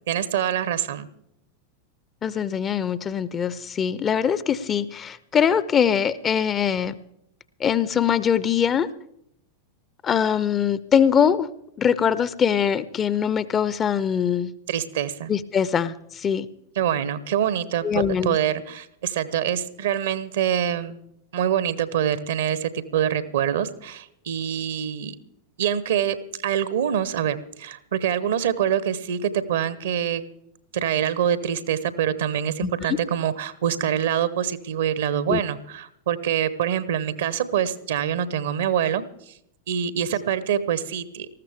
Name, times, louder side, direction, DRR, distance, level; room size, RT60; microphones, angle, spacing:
voice 1, 0.1-1.1 14.7-15.3 16.8-21.0 21.3-25.2 25.6-26.2 26.4-30.2 30.7-39.3 39.7-41.3, right 9 dB, 60° right, 15 dB, 0.9 m, -25 dB
voice 2, 2.2-6.9 7.6-8.9 10.0-11.5 11.8-14.5 15.3-16.5 17.8-18.4 32.6-33.0 35.3-35.4, left 8 dB, 25° left, 17 dB, 0.6 m, -22 dB
19.5 x 14.5 x 3.5 m, 0.74 s
figure-of-eight pair, 90°, 0 cm